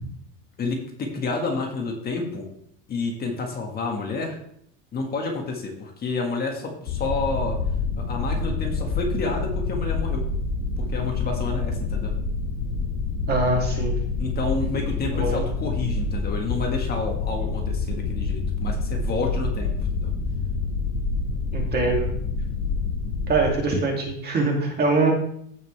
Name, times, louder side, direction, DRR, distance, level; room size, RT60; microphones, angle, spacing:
voice 1, 0.6-2.5 2.9-4.4 4.9-7.6 8.0-10.2 10.8-12.1 14.2-20.1, left 3 dB, 30° left, 1 dB, 1.6 m, -29 dB
sound 1, 6.9-23.5, left 4 dB, 70° left, 2.1 m, -27 dB
voice 2, 13.3-14.0 15.1-15.4 21.5-22.1 23.3-25.1, right 3 dB, 30° right, 0 dB, 2.2 m, -23 dB
15.0 x 5.3 x 3.3 m, 0.69 s
cardioid pair, 150°, 34 cm